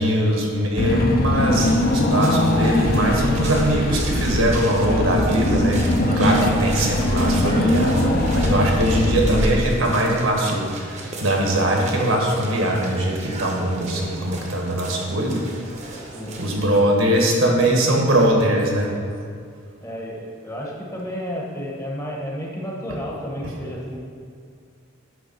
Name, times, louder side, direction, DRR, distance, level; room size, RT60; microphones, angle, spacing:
voice 1, 0.0-15.5 16.4-18.9, right 1 dB, 75° right, 0 dB, 1.4 m, -21 dB
Car / Engine, 0.8-9.9, left 1 dB, 45° left, 0.6 m, -21 dB
sound 1, 1.5-16.8, right 2 dB, 35° right, 0.8 m, -36 dB
voice 2, 6.3-6.7 16.1-16.4 19.8-24.0, equal, 15° left, -3 dB, 1.0 m, -31 dB
10.0 x 3.4 x 5.5 m, 2.2 s
head